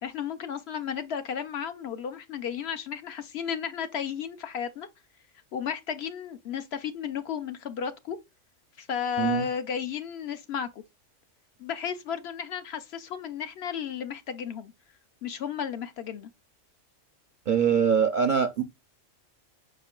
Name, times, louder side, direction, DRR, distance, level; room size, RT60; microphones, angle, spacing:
voice 1, 0.0-4.9 5.5-8.2 8.8-10.7 11.6-14.7 15.2-16.3, left 8 dB, 65° left, 0.8 m, -33 dB
voice 2, 9.2-9.5 17.5-18.6, right 7 dB, 60° right, 0.5 m, -23 dB
5.2 x 4.3 x 2.2 m
omnidirectional pair, 1.3 m